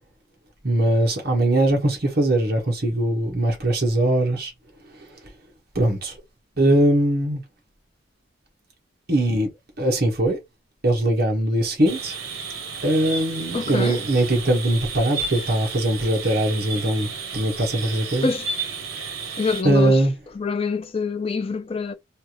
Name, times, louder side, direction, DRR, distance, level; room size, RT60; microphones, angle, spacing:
voice 1, 0.6-4.5 5.7-6.1 6.6-7.4 9.1-9.5 9.8-10.4 10.8-12.1 12.8-17.1 17.3-18.3 19.6-20.1, right 1 dB, 50° right, 1.1 m, -21 dB
sound 1, 11.8-19.6, right 4 dB, 85° right, 0.8 m, -32 dB
voice 2, 13.5-14.0 18.2-18.5 19.4-20.0 20.3-21.9, left 4 dB, 30° left, 0.3 m, -25 dB
3.3 x 2.5 x 2.9 m
head